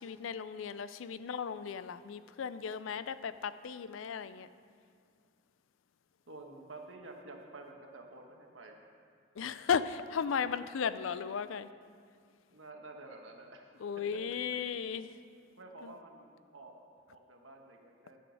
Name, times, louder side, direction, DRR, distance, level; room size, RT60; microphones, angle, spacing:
voice 1, 0.0-4.5 9.4-11.7 13.8-15.1 15.8-15.9, left 6 dB, 75° left, 13 dB, 0.4 m, -35 dB
voice 2, 6.3-8.8 12.5-14.4 15.6-16.7 17.1-18.2, right 2 dB, 70° right, 2 dB, 1.4 m, -50 dB
12.0 x 6.2 x 7.1 m, 2.2 s
head